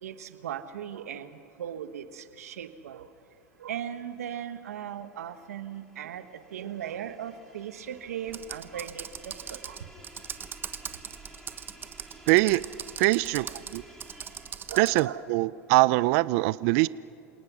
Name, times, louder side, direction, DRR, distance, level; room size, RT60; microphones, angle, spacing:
voice 1, 0.0-3.1 3.6-9.9 13.5-13.7 14.7-15.2, right 9 dB, 90° right, 10 dB, 1.4 m, -38 dB
sound 1, 3.1-15.0, equal, 5° left, 4.2 m, -54 dB
Computer keyboard, 8.3-15.1, right 7 dB, 25° right, 1.1 m, -40 dB
voice 2, 12.3-12.6 13.0-13.8 14.8-16.9, right 21 dB, 65° right, 19 dB, 0.5 m, -23 dB
28.0 x 18.5 x 6.2 m, 2.5 s
hypercardioid pair, 105°, 8 cm